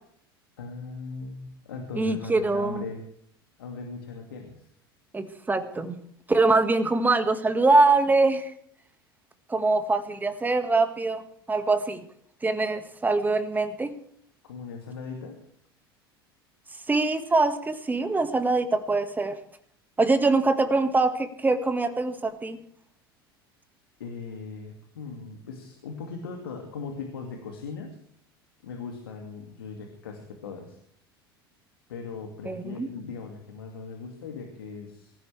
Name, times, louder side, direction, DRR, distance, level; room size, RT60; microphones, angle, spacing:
voice 1, 0.6-3.0 3.6-4.7 14.5-15.4 24.0-28.0 28.6-30.8 31.9-35.1, left 4 dB, 70° left, 2 dB, 2.3 m, -39 dB
voice 2, 1.9-2.8 5.1-6.0 6.3-8.5 9.5-12.0 12.4-13.9 16.9-19.4 20.0-22.6 32.5-32.9, right 3 dB, 15° right, 9 dB, 1.8 m, -23 dB
23.5 x 14.5 x 3.4 m, 0.65 s
figure-of-eight pair, 75°, 13 cm